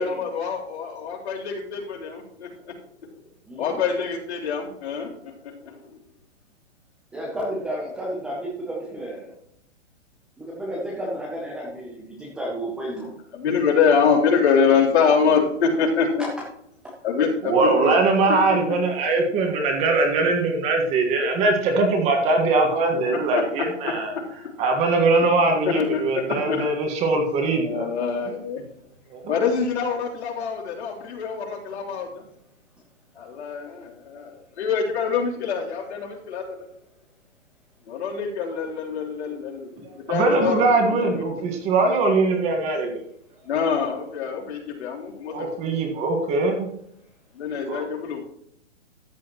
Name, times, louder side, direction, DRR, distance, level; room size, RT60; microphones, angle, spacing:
voice 1, 0.0-2.7 3.0-3.1 3.6-6.0 13.3-16.2 17.0-17.8 18.3-18.8 23.1-24.5 25.2-25.3 25.6-26.7 27.4-28.6 29.3-32.2 33.1-36.7 37.9-41.4 43.4-45.5 47.3-48.2, left 6 dB, 60° left, -2 dB, 3.4 m, -25 dB
voice 2, 3.5-3.8 7.1-9.3 10.4-13.1, right 1 dB, ahead, -4 dB, 0.5 m, -32 dB
voice 3, 17.4-24.1 24.6-27.9 29.1-29.4 40.1-43.0 45.3-46.7 47.7-47.8, right 3 dB, 20° right, 3 dB, 1.5 m, -21 dB
13.5 x 8.4 x 2.9 m, 0.72 s
hypercardioid pair, 160°, 37 cm